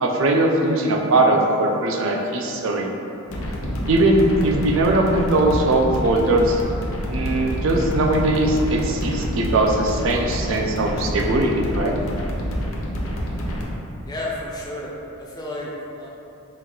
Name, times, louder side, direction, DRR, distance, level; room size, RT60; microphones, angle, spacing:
voice 1, 0.0-2.9 3.9-6.6 7.1-11.9, right 2 dB, 65° right, 1 dB, 0.4 m, -20 dB
sound 1, 3.3-13.6, equal, 75° left, 0.7 m, -27 dB
voice 2, 14.1-15.7 16.0-16.1, left 1 dB, 15° left, -4 dB, 0.5 m, -32 dB
4.5 x 2.3 x 3.7 m, 2.8 s
head